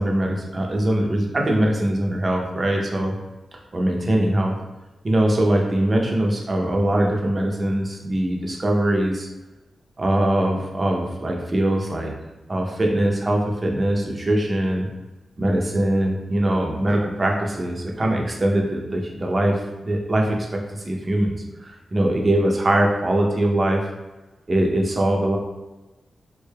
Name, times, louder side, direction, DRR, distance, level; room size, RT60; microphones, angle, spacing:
voice 1, 0.0-3.1 3.7-4.5 5.0-9.3 10.0-12.1 12.5-14.9 15.4-21.3 21.6-23.9 24.5-25.4, right 1 dB, 30° right, 0 dB, 0.5 m, -22 dB
3.7 x 2.2 x 3.3 m, 1.1 s
wide cardioid pair, 140°, 0 cm